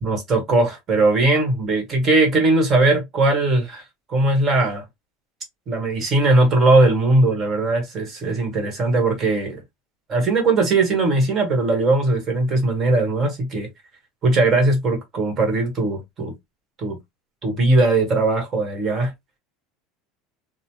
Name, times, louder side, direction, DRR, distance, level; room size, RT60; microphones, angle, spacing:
voice 1, 0.0-3.8 4.1-4.8 5.7-9.6 10.1-13.7 14.2-16.3 16.8-17.0 17.4-19.1, right 2 dB, 35° right, 1.2 m, -19 dB
3.0 x 2.1 x 2.8 m
supercardioid pair, 130°, 0 cm